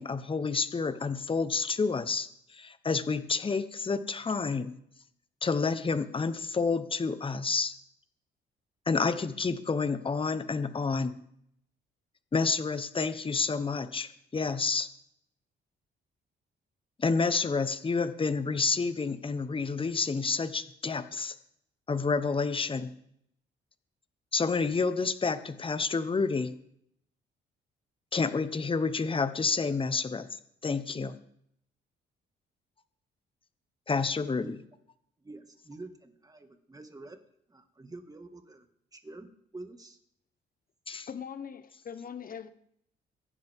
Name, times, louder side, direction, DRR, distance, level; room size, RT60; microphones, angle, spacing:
voice 1, 0.0-4.8 5.4-7.7 8.9-11.2 12.3-14.9 17.0-21.3 21.9-22.9 24.3-26.5 28.1-31.2 33.9-34.6 40.9-41.1, left 4 dB, 25° left, 1.1 m, -29 dB
voice 2, 34.2-34.5 35.2-37.2 37.5-38.7 38.9-40.0, right 2 dB, 20° right, 2.0 m, -47 dB
voice 3, 41.1-42.5, left 7 dB, 45° left, 1.3 m, -41 dB
23.5 x 10.5 x 3.7 m
cardioid pair, 90°, 20 cm